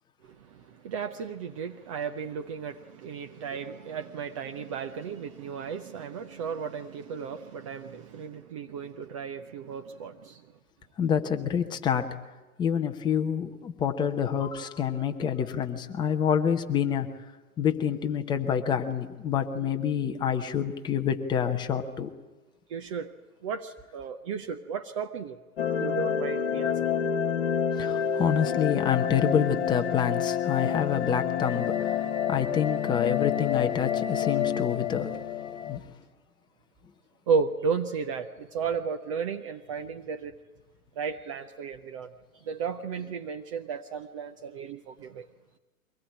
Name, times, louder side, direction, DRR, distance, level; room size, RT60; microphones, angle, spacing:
voice 1, 0.2-10.4 22.7-23.1 23.4-25.4 25.8-26.8 37.3-40.4 41.0-42.1 42.4-45.3, right 6 dB, 25° right, 6 dB, 0.7 m, -34 dB
voice 2, 11.0-12.1 12.6-17.1 17.6-22.1 27.8-35.1 35.7-35.8, left 8 dB, 10° left, 6 dB, 1.0 m, -27 dB
sound 1, 25.6-35.8, left 8 dB, 50° left, 1.9 m, -28 dB
23.5 x 19.5 x 9.0 m, 1.2 s
figure-of-eight pair, 125°, 43 cm